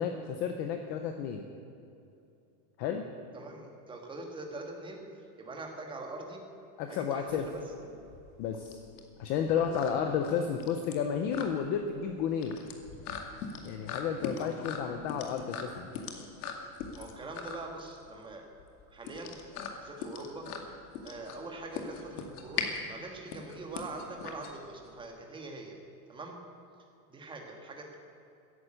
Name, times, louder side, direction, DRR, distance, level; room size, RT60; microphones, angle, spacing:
voice 1, 0.0-1.4 2.8-3.0 6.8-7.4 8.4-8.8 9.2-12.6 13.6-16.0, left 7 dB, 20° left, 6 dB, 0.4 m, -32 dB
voice 2, 3.3-6.4 6.9-8.0 9.6-10.0 14.4-14.5 16.9-18.5 18.9-19.4 19.8-20.5 21.0-25.8 26.1-26.4 27.1-28.0, right 2 dB, 10° right, 2 dB, 1.6 m, -43 dB
sound 1, 7.4-25.0, left 6 dB, 70° left, 2.3 m, -41 dB
14.5 x 11.0 x 8.8 m, 2.7 s
supercardioid pair, 170°, 47 cm